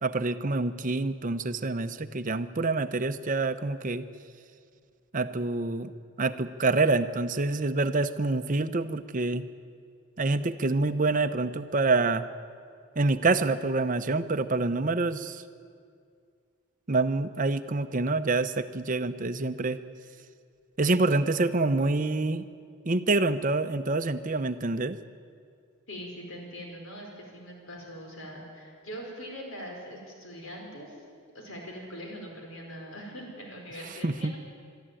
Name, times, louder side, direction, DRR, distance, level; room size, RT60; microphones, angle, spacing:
voice 1, 0.0-4.0 5.1-5.9 6.2-9.4 10.2-12.3 13.0-15.4 16.9-19.8 20.8-22.4 22.9-25.0 34.0-34.3, right 3 dB, 40° right, 10 dB, 0.7 m, -26 dB
voice 2, 25.9-31.0 31.3-34.4, equal, 70° left, 1 dB, 4.8 m, -42 dB
22.5 x 13.0 x 9.1 m, 2.2 s
head